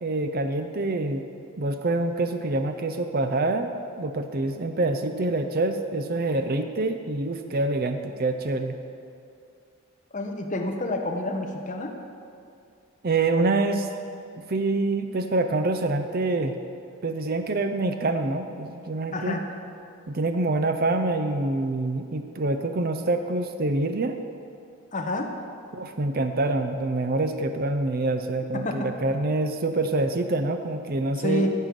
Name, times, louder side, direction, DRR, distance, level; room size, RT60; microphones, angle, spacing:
voice 1, 0.0-1.3 1.6-3.7 4.0-8.7 13.0-13.9 14.5-16.5 17.0-19.4 20.1-24.2 25.7-31.5, right 2 dB, 40° right, 7 dB, 0.5 m, -26 dB
voice 2, 10.1-11.9 19.1-19.4 24.9-25.3 28.5-28.9 31.2-31.5, left 1 dB, 35° left, 2 dB, 1.0 m, -28 dB
15.0 x 5.5 x 7.5 m, 2.4 s
head